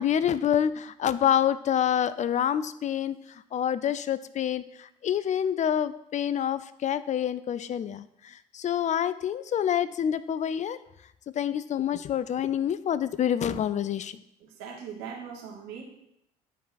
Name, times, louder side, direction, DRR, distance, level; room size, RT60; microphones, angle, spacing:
voice 1, 0.0-3.2 3.5-10.8 11.4-14.2, left 9 dB, 40° left, 15 dB, 0.5 m, -27 dB
voice 2, 14.4-15.8, right 7 dB, 70° right, 0 dB, 1.7 m, -40 dB
9.1 x 4.6 x 4.2 m, 0.77 s
hypercardioid pair, 55°, 20 cm